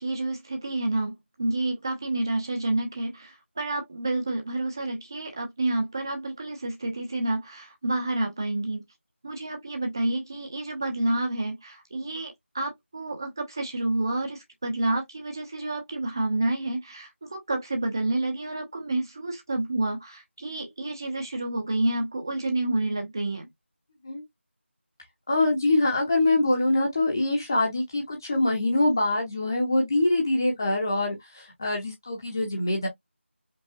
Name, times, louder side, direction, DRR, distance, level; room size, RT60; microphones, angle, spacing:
voice 1, 0.0-8.8 9.2-23.5, right 2 dB, 20° right, 0.8 m, -29 dB
voice 2, 25.3-32.9, left 2 dB, 15° left, 0.9 m, -24 dB
5.4 x 2.4 x 2.5 m
figure-of-eight pair, 175°, 7 cm